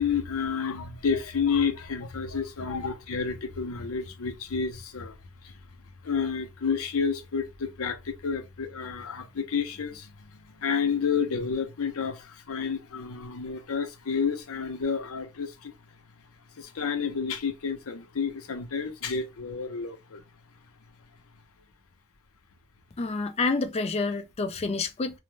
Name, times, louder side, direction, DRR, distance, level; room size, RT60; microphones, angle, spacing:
voice 1, 0.0-5.1 6.0-10.1 10.6-15.7 16.6-20.2, left 6 dB, 70° left, 0.6 m, -30 dB
voice 2, 23.0-25.2, left 3 dB, 30° left, 0.4 m, -28 dB
2.6 x 2.0 x 3.1 m
head